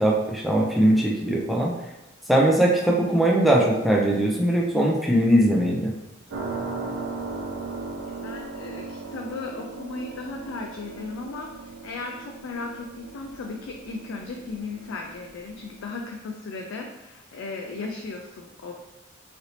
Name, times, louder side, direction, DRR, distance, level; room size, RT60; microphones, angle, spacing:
voice 1, 0.0-1.7 2.3-5.9, right 1 dB, ahead, -2 dB, 0.4 m, -20 dB
sound 1, 6.3-16.0, right 3 dB, 85° right, 0.5 m, -37 dB
voice 2, 8.0-18.7, left 3 dB, 75° left, 1 dB, 0.3 m, -36 dB
3.2 x 2.6 x 2.8 m, 1.0 s
head